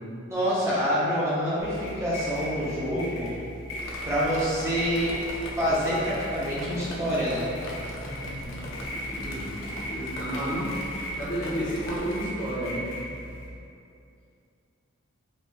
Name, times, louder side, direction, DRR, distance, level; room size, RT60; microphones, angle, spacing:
voice 1, 0.3-3.3 4.1-5.1 5.6-7.5, equal, 15° right, -9 dB, 0.6 m, -26 dB
sound 1, 1.6-13.5, equal, 85° left, 1.1 m, -38 dB
Drip, 3.8-12.3, left 1 dB, 65° left, 0.4 m, -41 dB
voice 2, 8.0-10.9 11.1-12.9, equal, 40° left, -17 dB, 1.0 m, -32 dB
4.3 x 2.4 x 2.3 m, 2.5 s
head